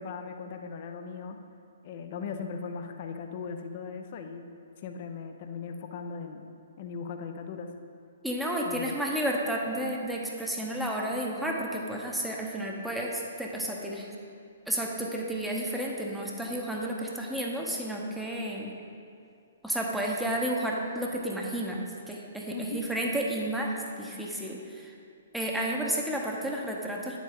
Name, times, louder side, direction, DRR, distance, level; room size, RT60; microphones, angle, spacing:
voice 1, 0.0-1.4 1.8-4.5 4.8-6.5 6.8-7.7 8.6-9.0 22.5-22.8, left 5 dB, 40° left, 6 dB, 0.8 m, -38 dB
voice 2, 8.2-14.1 14.7-18.8 19.6-24.9 25.3-27.2, right 1 dB, ahead, -2 dB, 0.9 m, -32 dB
10.0 x 7.3 x 3.7 m, 2.5 s
figure-of-eight pair, 125°, 0 cm